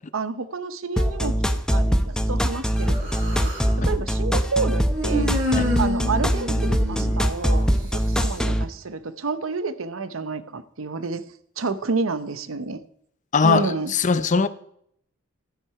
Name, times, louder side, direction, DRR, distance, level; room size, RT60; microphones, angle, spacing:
voice 1, 0.1-3.5 3.9-5.3 5.8-7.7 7.9-11.2 11.6-12.8 13.4-13.9, right 4 dB, 90° right, 0.8 m, -29 dB
sound 1, 1.0-8.6, equal, 5° left, 0.7 m, -22 dB
Human voice, 2.8-3.7 4.9-7.6, left 1 dB, 65° right, 3.6 m, -28 dB
voice 2, 13.3-14.5, left 4 dB, 40° left, 0.6 m, -20 dB
12.5 x 8.8 x 4.7 m
head